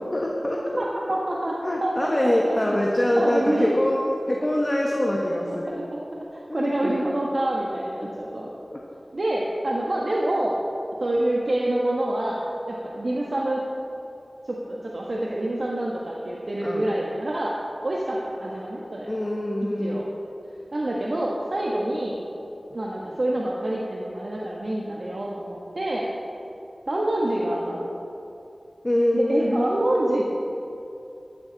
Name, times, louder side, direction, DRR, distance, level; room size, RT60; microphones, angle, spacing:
voice 1, 0.0-1.2 1.6-4.0 4.3-5.7 6.5-7.2 8.0-8.1 8.7-8.8 16.6-16.9 19.1-20.0 28.8-29.6, left 1 dB, 30° left, -2 dB, 1.5 m, -25 dB
voice 2, 0.8-1.5 1.8-2.8 3.2-3.7 5.3-6.0 6.3-8.6 9.1-10.6 11.0-13.6 14.4-17.6 17.8-19.2 19.6-20.1 20.7-22.2 22.7-26.1 26.9-27.8 29.1-30.3, right 1 dB, 60° right, -3 dB, 1.5 m, -27 dB
15.0 x 13.5 x 4.1 m, 2.8 s
wide cardioid pair, 55°, 0 cm